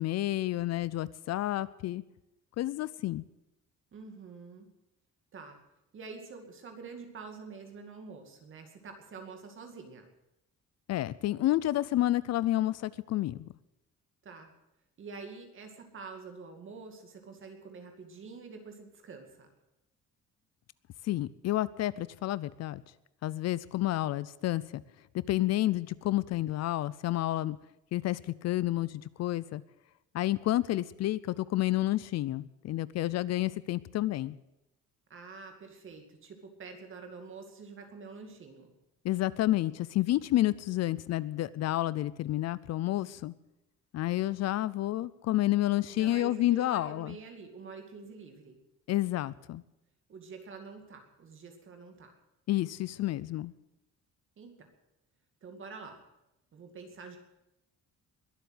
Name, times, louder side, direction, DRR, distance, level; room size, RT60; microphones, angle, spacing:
voice 1, 0.0-2.0 2.6-3.2 10.9-13.5 21.0-22.8 23.2-24.8 25.1-27.6 27.9-29.6 30.1-34.3 39.0-43.3 43.9-47.2 48.9-49.6 52.5-53.5, left 15 dB, 60° left, 19 dB, 0.5 m, -30 dB
voice 2, 3.9-4.7 5.3-5.6 5.9-10.1 14.2-14.5 15.0-19.5 35.1-38.7 45.9-48.6 50.1-52.2 54.4-54.5 55.4-56.0 56.5-57.2, right 4 dB, 45° right, 5 dB, 2.3 m, -47 dB
21.5 x 8.2 x 7.9 m, 0.90 s
cardioid pair, 160°, 30 cm